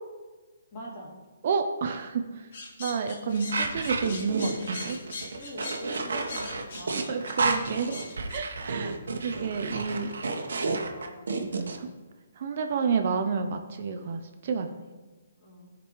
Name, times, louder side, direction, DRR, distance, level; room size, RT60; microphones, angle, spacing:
voice 1, 0.7-1.1 5.3-7.1 10.7-11.3 15.4-15.7, equal, 30° left, -6 dB, 2.7 m, -44 dB
voice 2, 1.4-2.5 2.8-5.0 7.1-8.0 8.3-9.0 9.2-10.1 11.5-11.9 12.4-14.7, right 5 dB, 45° right, 7 dB, 0.6 m, -30 dB
sound 1, 2.5-8.4, left 3 dB, 55° left, 1.9 m, -41 dB
sound 2, 3.5-11.8, right 3 dB, 85° right, 1.1 m, -31 dB
15.0 x 5.2 x 3.1 m, 1.2 s
hypercardioid pair, 170°, 0 cm